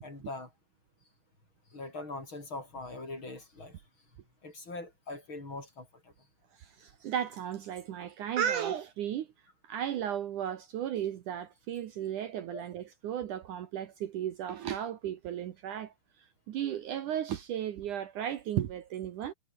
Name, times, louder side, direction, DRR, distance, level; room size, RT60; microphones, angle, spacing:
voice 1, 0.0-0.5 1.7-3.8 4.4-6.1 12.5-12.6, left 2 dB, 30° left, 6.7 m, -42 dB
voice 2, 6.6-9.3 9.6-15.9 16.5-19.3, right 10 dB, 65° right, 2.5 m, -35 dB
omnidirectional pair, 4.2 m